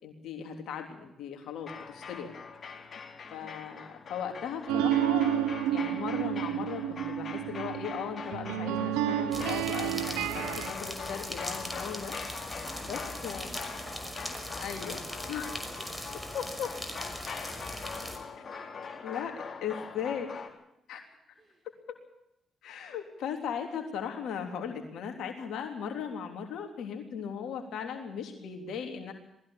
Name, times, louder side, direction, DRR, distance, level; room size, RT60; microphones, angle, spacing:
voice 1, 0.0-2.3 3.3-12.2 12.8-13.5 14.6-15.0 15.3-15.5 16.3-16.7 19.0-19.3 19.6-20.3 20.9-21.0 22.6-29.1, left 7 dB, 75° left, 4 dB, 3.5 m, -37 dB
sound 1, 1.6-20.5, left 5 dB, 55° left, 3.9 m, -43 dB
voice 2, 3.2-3.6 12.6-16.4 16.6-20.3 21.3-21.7, right 2 dB, 30° right, 0 dB, 6.1 m, -55 dB
sound 2, 4.7-10.7, right 11 dB, 90° right, 0.8 m, -30 dB
sound 3, 9.3-18.2, equal, 5° right, 5.8 m, -40 dB
20.5 x 15.5 x 8.8 m, 0.83 s
supercardioid pair, 55°, 0 cm